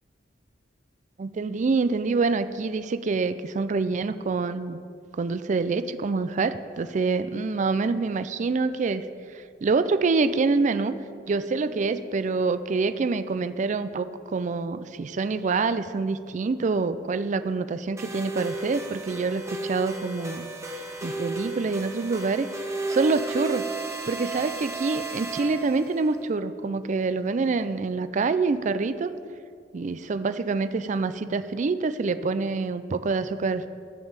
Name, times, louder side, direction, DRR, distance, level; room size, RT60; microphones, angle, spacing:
voice 1, 1.2-4.8 5.2-9.1 9.3-10.9 11.3-20.5 21.0-23.7 24.1-29.1 29.7-33.7, right 4 dB, 40° right, 12 dB, 0.4 m, -26 dB
sound 1, 18.0-26.1, right 3 dB, 15° right, 1.1 m, -34 dB
13.5 x 5.4 x 7.4 m, 2.3 s
head